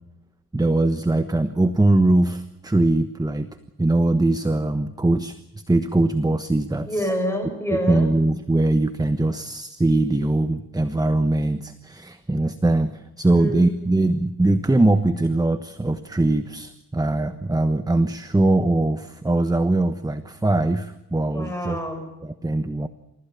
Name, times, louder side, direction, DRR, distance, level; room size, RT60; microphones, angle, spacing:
voice 1, 0.5-5.3 5.7-7.1 7.9-21.8 22.2-22.9, right 2 dB, 10° right, 10 dB, 1.1 m, -21 dB
voice 2, 6.9-8.1 13.3-13.7 21.3-22.1, equal, 5° left, 4 dB, 7.7 m, -27 dB
29.0 x 15.5 x 7.1 m, 0.89 s
cardioid pair, 105°, 36 cm